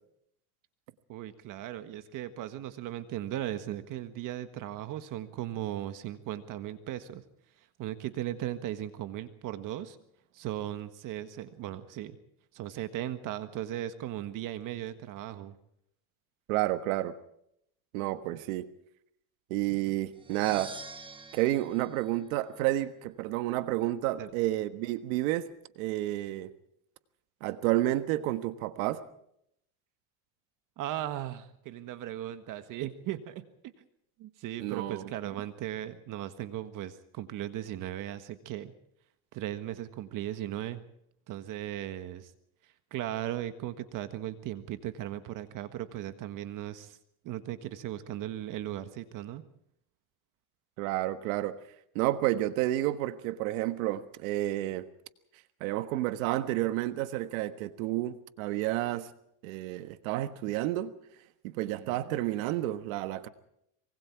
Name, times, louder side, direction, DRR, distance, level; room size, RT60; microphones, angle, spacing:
voice 1, 1.1-7.2 7.6-10.0 10.3-12.2 12.5-15.6 24.2-24.3 30.8-33.7 34.2-38.7 39.3-40.8 41.3-42.3 42.9-47.0 47.2-49.4 61.6-62.1, right 12 dB, 50° right, 11 dB, 1.6 m, -37 dB
voice 2, 16.5-17.1 17.9-18.7 19.5-20.7 21.3-25.5 25.8-26.5 27.4-29.0 34.6-35.4 50.8-51.6 51.9-54.9 55.6-59.1 59.4-60.9 61.4-63.3, right 15 dB, 80° right, 11 dB, 1.5 m, -30 dB
sound 1, 20.1-23.0, right 4 dB, 10° right, 1.5 m, -47 dB
25.0 x 23.0 x 4.7 m, 0.74 s
cardioid pair, 135°, 40 cm